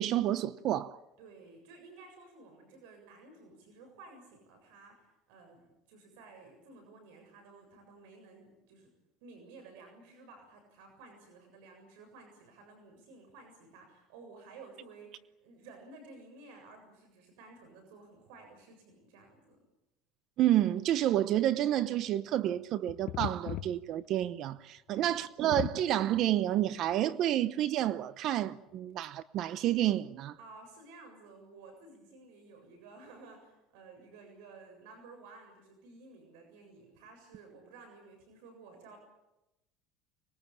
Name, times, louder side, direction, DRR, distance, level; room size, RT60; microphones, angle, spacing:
voice 1, 0.0-1.0 20.4-30.3, right 12 dB, 50° right, 0.8 m, -29 dB
voice 2, 1.2-8.9 9.2-19.6 24.9-25.4 30.4-39.0, right 3 dB, 80° right, 7.4 m, -54 dB
sound 1, 22.5-22.6 22.9-24.3 24.6-24.7 25.0-25.1 25.5-26.2 26.9-27.0, left 14 dB, 55° left, 1.0 m, -37 dB
25.0 x 21.5 x 8.8 m
cardioid pair, 140°, 0 cm